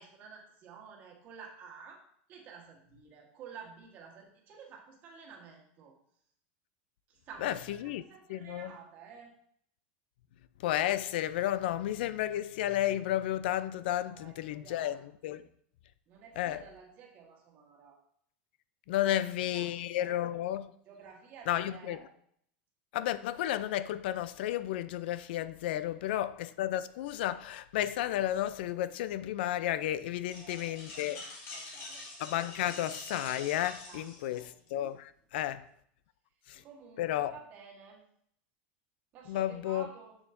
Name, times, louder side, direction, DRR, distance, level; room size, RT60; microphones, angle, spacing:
voice 1, 0.0-2.0 2.3-5.9 7.1-9.3 14.1-15.4 16.1-18.0 18.9-20.4 20.9-22.1 25.7-26.1 30.3-32.1 33.9-34.5 35.3-35.5 36.5-38.0 39.1-40.2, right 6 dB, 30° right, 1.3 m, -52 dB
voice 2, 7.4-8.0 8.3-8.7 10.6-15.0 15.2-15.4 16.4-16.6 18.9-20.7 21.5-22.0 22.9-31.2 32.2-35.7 36.5-36.6 37.0-37.3 39.3-39.9, left 13 dB, 75° left, 0.4 m, -32 dB
sound 1, 30.3-34.7, left 3 dB, 45° left, 2.3 m, -45 dB
7.1 x 6.8 x 2.6 m
supercardioid pair, 175°, 6 cm